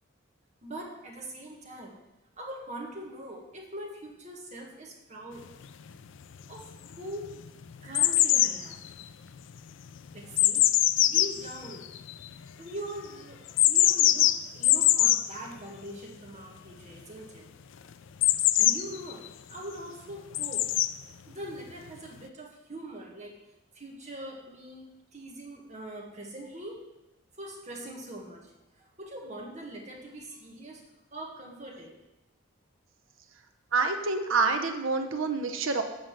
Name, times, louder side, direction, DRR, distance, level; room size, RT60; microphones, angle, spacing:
voice 1, 0.6-1.9 2.4-5.4 6.5-7.3 7.8-8.8 10.1-11.9 12.6-17.5 18.6-20.7 21.3-23.4 23.7-26.8 27.4-30.8 31.1-32.0, right 1 dB, 35° right, 0 dB, 1.5 m, -42 dB
sound 1, 5.6-5.7 6.3-6.9 7.2-12.5 13.5-15.3 18.2-19.3 20.3-20.9 21.9-22.0, left 13 dB, 60° left, 0.4 m, -23 dB
voice 2, 33.7-35.8, right 4 dB, 70° right, 6 dB, 0.8 m, -27 dB
7.5 x 5.1 x 7.3 m, 1.0 s
head